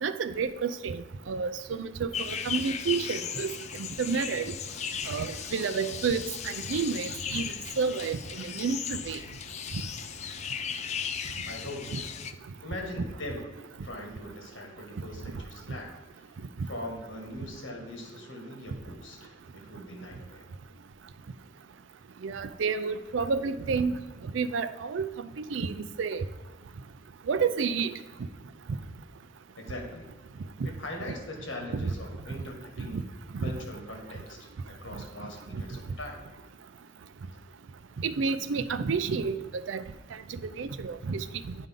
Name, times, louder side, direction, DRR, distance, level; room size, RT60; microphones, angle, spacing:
voice 1, 0.0-3.5 3.8-4.4 5.1-7.5 7.8-9.2 11.9-12.0 22.2-23.9 24.3-25.1 25.5-26.2 27.3-27.9 31.8-31.9 32.8-33.0 33.3-33.5 35.5-35.6 38.0-39.8 40.3-41.6, right 5 dB, 75° right, 13 dB, 0.4 m, -30 dB
sound 1, 2.1-12.3, left 7 dB, 35° left, 0.3 m, -36 dB
voice 2, 11.4-12.0 12.6-13.5 13.8-20.5 29.6-30.1 30.6-33.0 33.4-36.2, left 1 dB, 80° left, 1 dB, 1.8 m, -41 dB
9.4 x 5.2 x 3.7 m, 1.3 s
head